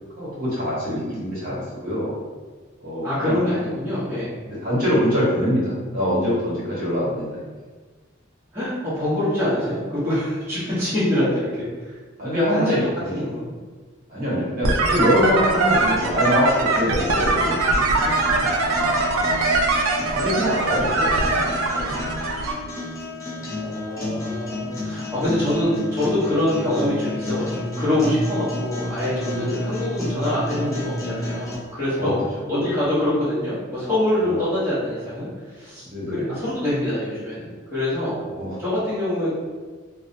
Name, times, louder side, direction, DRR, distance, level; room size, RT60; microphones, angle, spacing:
voice 1, 0.2-2.2 2.8-3.4 4.5-7.4 12.2-13.1 14.1-19.3 20.1-22.1 29.3-29.6 31.9-32.5 34.2-34.4 35.8-36.3 38.3-38.6, equal, 45° right, -8 dB, 0.9 m, -24 dB
voice 2, 3.0-4.3 8.5-11.7 12.5-12.7 13.1-13.5 23.5-32.2 32.5-35.3 35.5-35.8 36.1-38.2 38.6-39.3, left 1 dB, 10° right, -13 dB, 0.8 m, -24 dB
sound 1, 14.6-22.5, right 2 dB, 80° right, 0.3 m, -22 dB
sound 2, 15.5-31.5, left 1 dB, 15° left, 0.3 m, -31 dB
2.6 x 2.1 x 2.6 m, 1.4 s
head